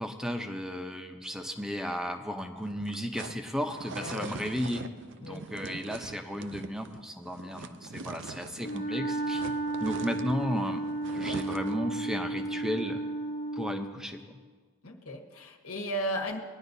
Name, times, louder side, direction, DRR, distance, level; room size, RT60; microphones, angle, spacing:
voice 1, 0.0-4.9 5.2-9.4 9.8-10.8 11.1-13.0 13.5-14.4, equal, ahead, 5 dB, 0.7 m, -34 dB
sound 1, 2.6-8.9 9.1-11.9, right 4 dB, 55° right, 0.5 m, -43 dB
voice 2, 4.0-4.4 5.2-5.5 14.8-16.4, equal, 85° left, 0 dB, 1.4 m, -35 dB
Wind instrument woodwind instrument, 8.6-14.0, right 2 dB, 50° left, 1.1 m, -33 dB
20.5 x 10.5 x 2.7 m, 1.5 s
head